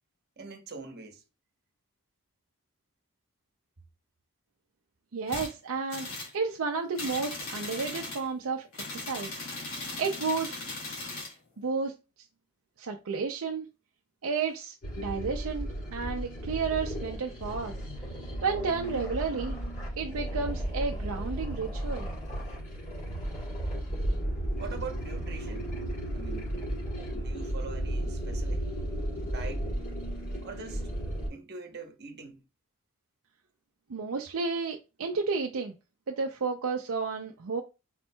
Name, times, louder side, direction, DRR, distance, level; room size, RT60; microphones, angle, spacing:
voice 1, 0.4-1.2 24.6-25.7 26.1-26.5 27.1-28.6 29.2-29.7 30.4-30.9 31.3-32.4, right 4 dB, 50° right, 0.9 m, -43 dB
voice 2, 5.1-6.1 6.3-8.6 8.9-9.4 10.0-10.6 11.6-11.9 12.8-13.7 14.2-17.8 18.4-19.5 20.0-22.1 33.9-35.7 36.1-37.6, right 4 dB, 70° right, 0.5 m, -32 dB
sound 1, 5.3-5.5 5.9-6.3 6.9-8.3 8.7-11.3, left 2 dB, 65° left, 2.1 m, -38 dB
sound 2, 14.8-31.3, right 1 dB, 40° left, 2.6 m, -34 dB
4.4 x 4.2 x 2.2 m
head